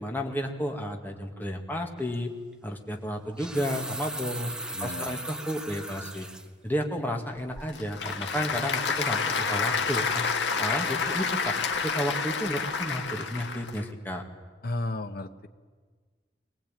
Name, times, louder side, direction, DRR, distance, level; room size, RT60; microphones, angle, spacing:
voice 1, 0.0-2.3 2.6-4.5 4.8-6.3 6.6-10.3 10.6-11.5 11.8-14.2, equal, 10° left, 2 dB, 2.0 m, -32 dB
sound 1, 2.0-2.2 3.2-6.5 6.9-7.0 7.5-7.9 8.1-8.2, right 1 dB, 5° right, 1.2 m, -38 dB
voice 2, 4.7-5.2 14.6-15.5, left 2 dB, 55° left, 9 dB, 1.2 m, -33 dB
Applause / Crowd, 7.4-13.8, left 5 dB, 75° left, 1.7 m, -29 dB
22.5 x 19.0 x 9.0 m, 1.5 s
head